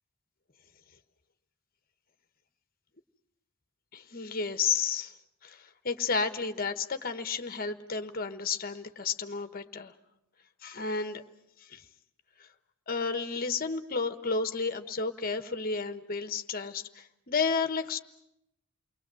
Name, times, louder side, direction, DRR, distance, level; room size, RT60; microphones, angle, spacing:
voice 1, 3.9-5.1 5.4-9.9 10.6-11.2 11.7-11.8 12.9-18.0, left 5 dB, 40° left, 9 dB, 1.1 m, -32 dB
29.5 x 21.5 x 7.6 m, 0.83 s
head